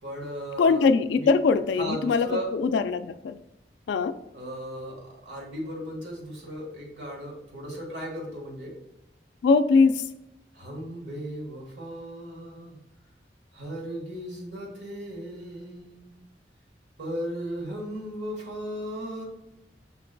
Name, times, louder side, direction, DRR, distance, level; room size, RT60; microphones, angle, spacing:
voice 1, 0.0-0.9 1.2-1.3 1.8-2.5 4.3-4.9 5.2-8.7 10.5-12.8 13.5-16.1 17.0-19.2, equal, 85° right, -2 dB, 1.5 m, -36 dB
voice 2, 0.6-3.4 3.9-4.2 9.4-10.0, left 4 dB, 85° left, 11 dB, 0.3 m, -22 dB
5.7 x 3.8 x 2.2 m, 0.87 s
head